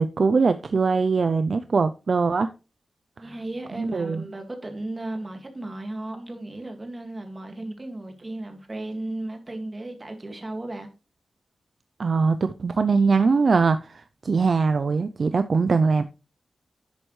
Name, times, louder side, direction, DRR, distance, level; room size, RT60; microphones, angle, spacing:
voice 1, 0.0-2.5 3.8-4.2 12.0-16.0, right 4 dB, 45° right, 0.4 m, -22 dB
voice 2, 3.2-10.9, right 2 dB, 25° right, 2.0 m, -35 dB
10.5 x 7.9 x 3.2 m
wide cardioid pair, 150°, 0 cm